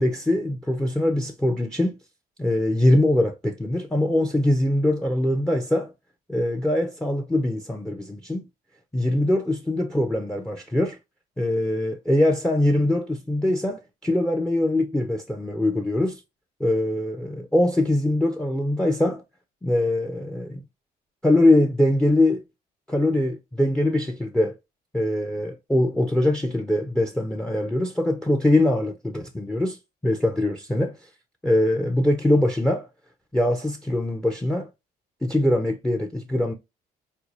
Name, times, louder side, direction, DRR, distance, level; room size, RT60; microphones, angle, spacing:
voice 1, 0.0-2.0 2.4-5.9 6.3-8.5 8.9-11.0 11.4-16.2 16.6-19.2 19.6-20.6 21.2-22.4 22.9-24.5 24.9-29.8 30.0-31.1 31.4-32.9 33.3-34.7 35.2-36.5, left 1 dB, 5° left, 0.4 m, -22 dB
4.4 x 2.3 x 2.5 m
cardioid pair, 110°, 17 cm